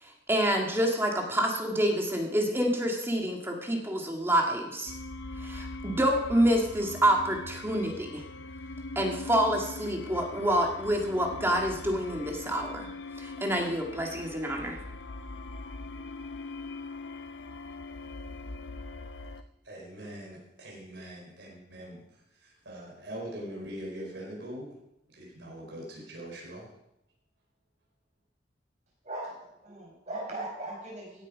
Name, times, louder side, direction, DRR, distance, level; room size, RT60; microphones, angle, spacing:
voice 1, 0.0-4.9 5.4-8.2 9.0-12.9 13.2-14.8, right 1 dB, 15° right, 1 dB, 1.9 m, -27 dB
sound 1, 4.9-19.4, left 2 dB, 80° left, 0.8 m, -41 dB
voice 2, 19.6-24.7 25.1-26.7, right 1 dB, 75° right, -2 dB, 4.6 m, -42 dB
voice 3, 29.0-31.2, right 2 dB, 40° right, -2 dB, 5.2 m, -39 dB
16.5 x 9.1 x 5.1 m, 0.84 s
head